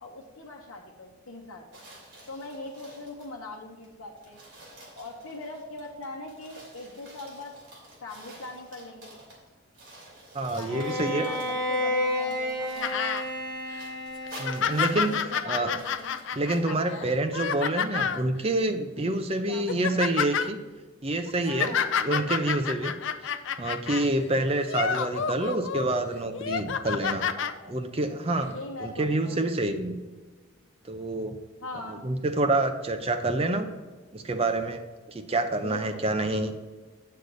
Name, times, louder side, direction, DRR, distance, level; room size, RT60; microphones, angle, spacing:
voice 1, 0.0-1.8 2.3-4.4 4.9-7.5 8.0-9.2 10.5-13.0 15.1-16.2 16.6-17.1 19.4-20.0 21.4-22.6 27.2-27.8 28.5-29.4 31.6-32.1 35.6-36.0, left 2 dB, 80° left, -2 dB, 0.9 m, -41 dB
sound 1, 1.7-3.4 3.8-3.9 4.2-9.5 9.7-11.8 12.3-16.7, right 1 dB, 60° right, 2.8 m, -49 dB
voice 2, 10.3-11.3 14.4-15.7 16.3-20.6 21.0-22.9 23.6-27.2 27.7-28.5 28.8-30.0 30.8-31.4 31.9-33.7 34.1-34.8 35.1-36.5, right 2 dB, 30° right, 7 dB, 0.6 m, -27 dB
Bowed string instrument, 10.7-15.1, left 1 dB, 5° left, 2.3 m, -31 dB
sound 2, 12.8-13.2 13.7-13.8 14.3-18.2 19.0-19.2 19.5-20.5 21.3-24.1 24.6-25.9 26.3-27.5 28.4-28.5, left 7 dB, 60° left, 0.4 m, -29 dB
8.2 x 6.6 x 3.9 m, 1.3 s
head